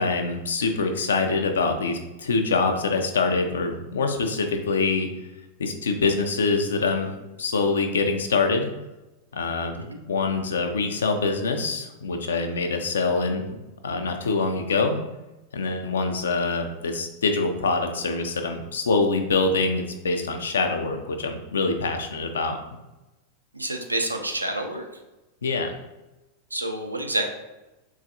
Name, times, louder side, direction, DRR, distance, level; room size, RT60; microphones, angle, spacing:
voice 1, 0.0-5.1 5.6-8.7 9.3-13.5 13.8-15.0 15.5-22.6 25.4-25.7, left 3 dB, 65° left, 5 dB, 0.4 m, -25 dB
voice 2, 23.5-24.8 26.5-27.3, right 1 dB, 85° right, 3 dB, 0.4 m, -28 dB
3.8 x 2.3 x 2.7 m, 1.0 s
figure-of-eight pair, 90°, 0 cm